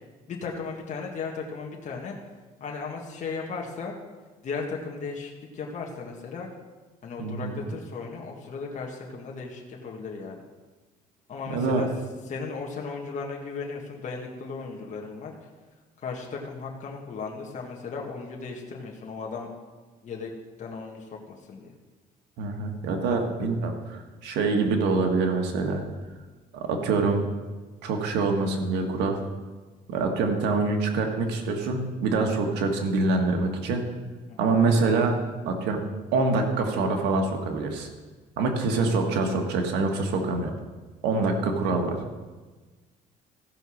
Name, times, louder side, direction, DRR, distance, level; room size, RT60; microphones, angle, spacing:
voice 1, 0.3-2.2 2.6-3.9 4.4-6.5 7.0-10.4 11.3-11.9 12.3-15.3 16.0-19.5 20.0-20.3 20.6-21.7 23.0-23.2 34.3-34.5, left 4 dB, 45° left, 0 dB, 1.7 m, -36 dB
voice 2, 7.2-7.6 11.5-11.8 22.4-25.8 26.5-27.3 27.8-29.2 29.9-33.8 34.4-35.2 35.4-35.8 36.1-37.9 38.4-40.5 41.0-42.0, right 3 dB, 85° right, 3 dB, 1.5 m, -25 dB
15.0 x 5.3 x 6.3 m, 1.3 s
cardioid pair, 110°, 17 cm